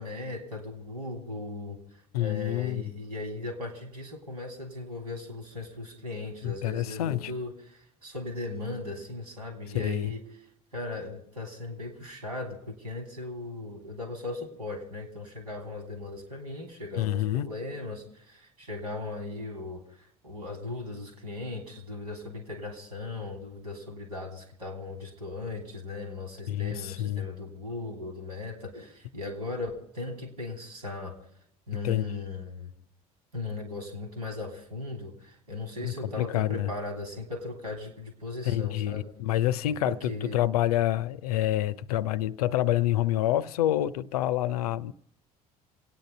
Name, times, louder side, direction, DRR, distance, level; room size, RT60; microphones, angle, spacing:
voice 1, 0.0-1.8 2.2-10.2 10.7-31.2 31.7-32.7 33.3-39.1 39.8-40.5, left 2 dB, 90° right, 3.2 m, -38 dB
voice 2, 2.1-2.9 6.4-7.3 9.7-10.1 17.0-17.5 26.5-27.2 31.8-32.2 35.8-36.7 38.4-44.9, left 13 dB, 80° left, 0.6 m, -27 dB
27.5 x 9.3 x 5.4 m
hypercardioid pair, 60°, 19 cm